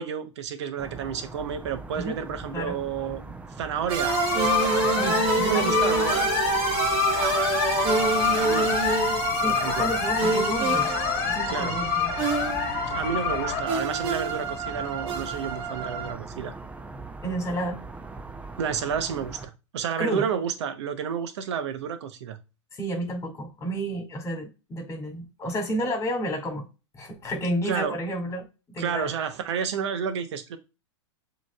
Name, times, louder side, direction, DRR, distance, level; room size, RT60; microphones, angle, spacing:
voice 1, 0.0-3.2 3.6-4.2 5.4-6.2 8.2-9.0 9.4-9.9 11.5-11.8 12.9-16.5 18.6-22.4 27.7-28.0 28.8-30.6, right 7 dB, 70° right, 0.9 m, -30 dB
sound 1, 0.8-19.5, right 3 dB, 10° right, 0.5 m, -42 dB
sound 2, 3.9-16.1, right 4 dB, 35° right, 1.0 m, -27 dB
sound 3, 4.1-13.6, left 14 dB, 45° left, 0.4 m, -28 dB
voice 2, 4.9-5.8 9.3-10.9 11.3-12.1 17.2-17.8 20.0-20.3 22.7-26.7 26.9-29.1, right 1 dB, 20° left, 2.0 m, -31 dB
7.4 x 3.1 x 2.3 m
hypercardioid pair, 110°, 16 cm